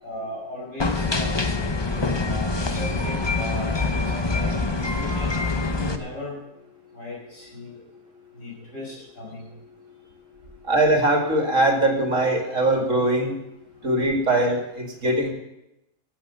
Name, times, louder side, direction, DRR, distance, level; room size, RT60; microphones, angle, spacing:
voice 1, 0.0-1.5 2.2-5.4 5.7-6.4 6.9-7.7 8.4-9.5, left 1 dB, 45° left, -4 dB, 6.1 m, -37 dB
sound 1, 0.8-6.0, left 3 dB, 30° left, 0.5 m, -25 dB
voice 2, 10.7-13.3 13.8-15.3, right 1 dB, 45° right, 2 dB, 2.6 m, -21 dB
15.5 x 8.9 x 6.8 m, 0.89 s
omnidirectional pair, 1.8 m